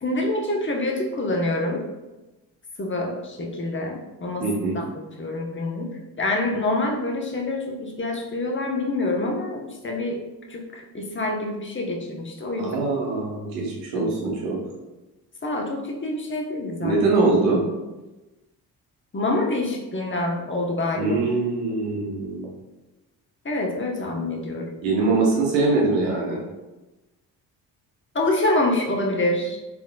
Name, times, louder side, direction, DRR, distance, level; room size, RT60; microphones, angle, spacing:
voice 1, 0.0-1.8 2.8-4.4 4.7-5.9 6.2-10.2 10.5-12.8 13.9-14.1 15.4-17.0 19.1-21.2 23.4-24.7 28.1-29.6, left 2 dB, 25° left, 0 dB, 1.0 m, -26 dB
voice 2, 4.4-4.8 12.6-14.6 16.8-17.6 20.9-22.5 24.8-26.4, right 3 dB, 90° right, -2 dB, 1.0 m, -23 dB
4.3 x 3.5 x 2.2 m, 1.1 s
hypercardioid pair, 45°, 50 cm